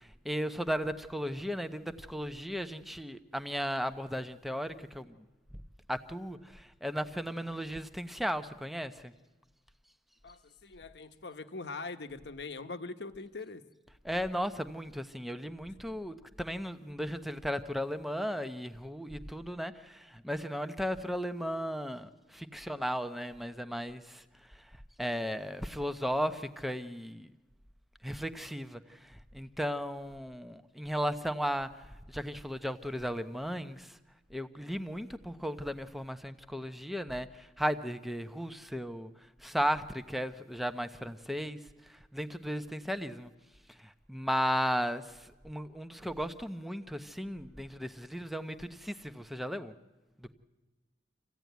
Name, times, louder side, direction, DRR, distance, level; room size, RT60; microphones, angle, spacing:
voice 1, 0.2-5.1 5.9-9.1 14.0-24.2 25.0-27.3 28.0-28.8 29.3-31.7 32.1-33.9 34.3-37.3 37.6-39.1 39.4-41.6 42.1-43.3 44.1-45.0 45.4-49.7, equal, ahead, 0.8 m, -35 dB
voice 2, 10.2-13.6, left 3 dB, 70° left, 1.0 m, -42 dB
26.0 x 15.5 x 9.3 m
head